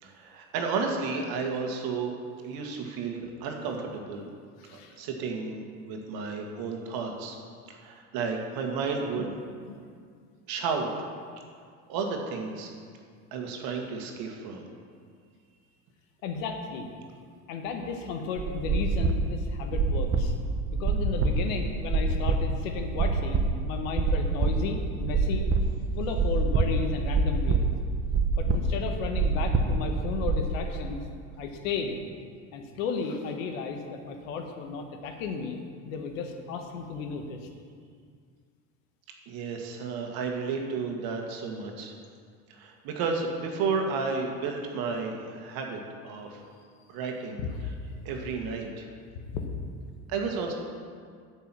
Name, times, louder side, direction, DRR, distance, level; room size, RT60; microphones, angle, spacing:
voice 1, 0.0-2.1 2.4-4.3 4.7-7.4 7.7-9.3 10.5-10.9 11.9-12.7 13.3-14.7 39.3-41.9 42.5-46.4 46.9-47.4 48.1-48.9 50.1-50.5, right 4 dB, 60° right, 2 dB, 1.7 m, -32 dB
voice 2, 4.6-5.0 9.2-9.8 16.2-16.9 17.5-20.3 20.8-25.5 26.0-27.7 28.4-31.0 31.4-32.0 32.5-37.4 47.4-48.1 49.3-49.5, left 5 dB, 80° left, 4 dB, 1.3 m, -34 dB
sound 1, 18.4-30.4, right 4 dB, 35° right, 0.9 m, -26 dB
8.8 x 5.4 x 7.5 m, 2.1 s
supercardioid pair, 90°, 40 cm